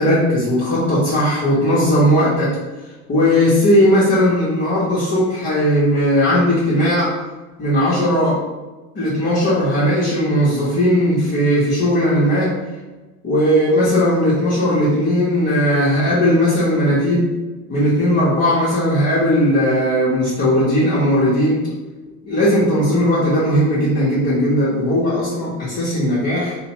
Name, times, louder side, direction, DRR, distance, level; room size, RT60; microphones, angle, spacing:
voice 1, 0.0-2.6 3.1-7.2 7.6-8.4 8.9-12.6 13.2-17.3 17.7-21.7 22.2-26.6, equal, 25° left, -11 dB, 1.0 m, -17 dB
2.8 x 2.2 x 3.0 m, 1.2 s
figure-of-eight pair, 70°, 45 cm